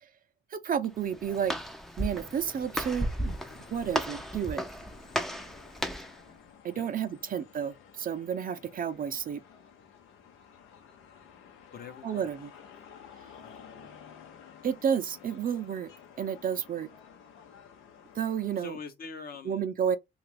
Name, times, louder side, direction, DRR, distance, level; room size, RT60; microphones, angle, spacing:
voice 1, 0.5-1.5 2.0-4.7 6.6-9.4 12.0-12.5 14.6-15.9 16.2-16.9 18.2-18.8 19.5-20.0, right 8 dB, 45° right, 0.5 m, -31 dB
Walk footsteps, 0.8-6.2, equal, ahead, 0.5 m, -35 dB
sound 1, 2.1-18.6, left 7 dB, 85° left, 0.8 m, -53 dB
voice 2, 11.7-12.3 13.4-13.9 18.6-19.7, left 5 dB, 50° left, 0.8 m, -44 dB
2.9 x 2.4 x 3.3 m
cardioid pair, 90°, 20 cm